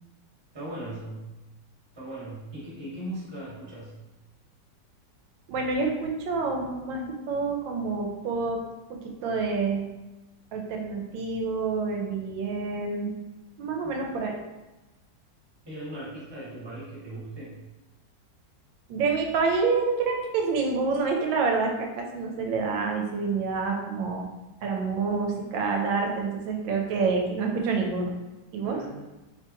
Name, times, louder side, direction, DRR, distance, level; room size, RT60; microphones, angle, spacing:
voice 1, 0.5-1.3 1.9-4.0 13.8-14.1 15.6-17.6 28.6-29.1, right 1 dB, 15° right, -7 dB, 1.0 m, -39 dB
voice 2, 5.5-8.6 8.9-9.8 10.5-13.1 13.6-14.3 18.9-24.2 24.6-28.1 28.5-28.8, right 4 dB, 90° right, 2 dB, 1.3 m, -27 dB
3.3 x 3.1 x 2.9 m, 1.1 s
omnidirectional pair, 2.0 m